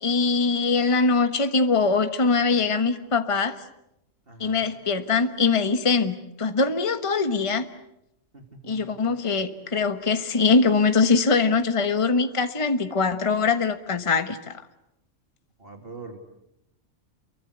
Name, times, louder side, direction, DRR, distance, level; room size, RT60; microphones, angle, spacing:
voice 1, 0.0-3.6 4.4-7.7 8.7-14.6, left 4 dB, 25° left, 8 dB, 1.3 m, -22 dB
voice 2, 4.3-4.7 8.3-9.0 15.6-16.2, right 3 dB, 45° right, 4 dB, 2.9 m, -43 dB
29.0 x 23.5 x 8.0 m, 0.83 s
omnidirectional pair, 1.4 m